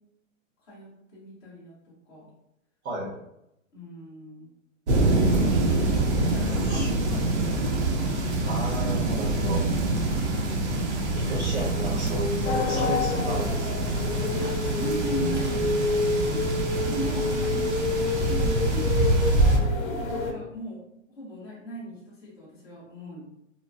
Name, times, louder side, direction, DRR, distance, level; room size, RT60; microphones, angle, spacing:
voice 1, 0.6-1.8 2.0-2.3 3.7-4.5 5.1-8.0 14.3-17.6 17.9-18.9 19.3-23.2, equal, 10° left, -11 dB, 0.5 m, -38 dB
voice 2, 2.8-3.1 6.0-6.1 6.5-6.9 8.4-9.6 11.1-13.8, right 1 dB, 80° right, -7 dB, 1.4 m, -33 dB
sound 1, 4.9-19.6, right 2 dB, 55° right, 0.7 m, -25 dB
sound 2, 12.4-20.3, left 3 dB, 85° left, 0.6 m, -28 dB
3.0 x 2.0 x 2.5 m, 0.84 s
hypercardioid pair, 160°, 41 cm